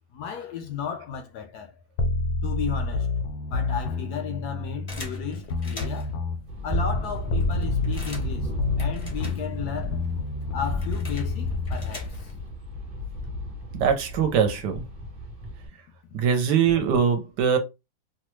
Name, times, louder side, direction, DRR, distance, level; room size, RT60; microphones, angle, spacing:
voice 1, 0.1-1.8 2.4-6.2 6.6-8.5 8.8-10.1 10.5-12.3, left 7 dB, 75° left, 0.9 m, -34 dB
sound 1, 2.0-7.0 7.3-12.1, left 3 dB, 90° left, 1.3 m, -29 dB
sound 2, 4.9-6.2 6.9-7.0 7.2-9.8 10.1-12.5, left 1 dB, 45° left, 0.4 m, -43 dB
sound 3, 6.5-15.7, left 1 dB, 25° right, 0.8 m, -34 dB
voice 2, 13.7-14.8 16.1-17.6, right 7 dB, 70° right, 1.2 m, -22 dB
3.1 x 2.3 x 3.0 m
omnidirectional pair, 2.1 m